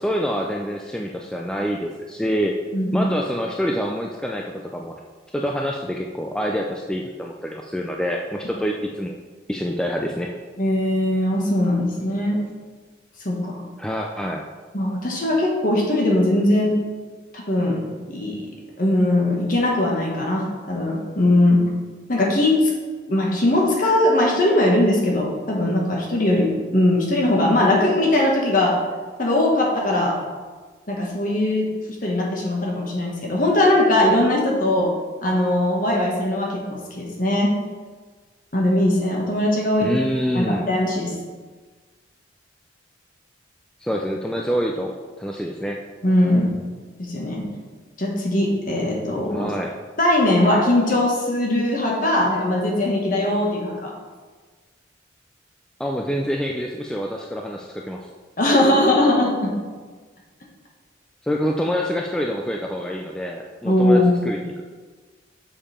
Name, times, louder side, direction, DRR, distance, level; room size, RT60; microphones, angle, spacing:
voice 1, 0.0-2.5 2.9-5.0 5.3-9.2 9.5-10.3 13.8-14.4 39.8-40.7 43.8-45.8 49.3-49.8 55.8-58.1 61.2-64.6, equal, 5° left, 0 dB, 0.3 m, -26 dB
voice 2, 2.7-3.1 10.6-12.4 13.2-13.6 14.7-16.8 17.3-17.8 18.1-18.4 18.8-21.6 22.1-22.7 23.1-28.8 29.2-30.2 30.9-31.7 32.0-34.9 35.2-37.5 38.5-39.9 40.3-41.1 46.0-46.5 47.0-47.5 48.0-49.5 50.0-53.9 58.4-59.5 63.6-64.1, left 1 dB, 45° left, -1 dB, 1.4 m, -20 dB
7.0 x 5.2 x 4.3 m, 1.4 s
head